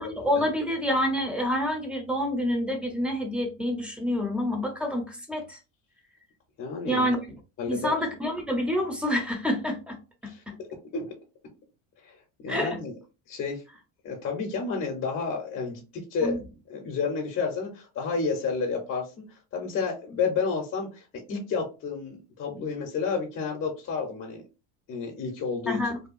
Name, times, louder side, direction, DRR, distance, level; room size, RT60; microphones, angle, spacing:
voice 1, 0.0-5.6 6.9-7.2 7.7-10.0 10.2-10.3 12.5-12.8 16.2-16.4 25.7-26.0, left 1 dB, 5° right, 4 dB, 0.7 m, -27 dB
voice 2, 6.6-7.1 7.6-8.0 10.2-10.4 10.9-11.1 12.0-12.9 13.3-13.6 14.0-16.4 16.7-24.4 24.9-25.8, left 5 dB, 40° left, 1 dB, 0.7 m, -31 dB
2.7 x 2.2 x 2.5 m, 0.30 s
supercardioid pair, 115°, 35 cm